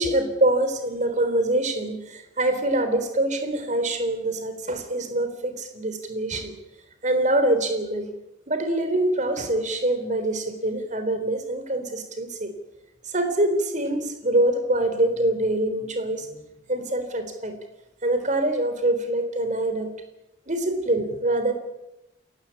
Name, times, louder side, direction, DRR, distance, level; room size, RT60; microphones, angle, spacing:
voice 1, 0.0-6.5 7.0-8.1 8.5-12.5 13.1-16.4 16.7-17.6 18.0-19.9 20.5-21.5, right 1 dB, 40° right, 8 dB, 3.7 m, -24 dB
28.5 x 16.0 x 8.6 m, 0.94 s
head